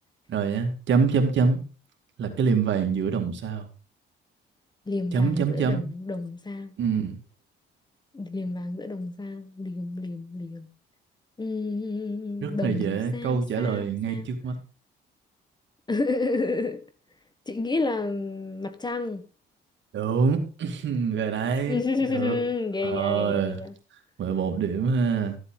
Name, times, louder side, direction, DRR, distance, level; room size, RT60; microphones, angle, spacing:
voice 1, 0.3-1.6 2.2-3.7 5.1-5.9 6.8-7.2 12.4-14.6 19.9-21.8 22.1-22.4 22.8-23.6 24.2-25.4, right 5 dB, 70° right, 2.3 m, -25 dB
voice 2, 4.9-6.7 8.1-10.7 11.4-14.3 15.9-16.8 17.5-19.2 21.7-23.7, left 3 dB, 20° left, 1.3 m, -30 dB
13.5 x 7.9 x 3.8 m
cardioid pair, 90°, 20 cm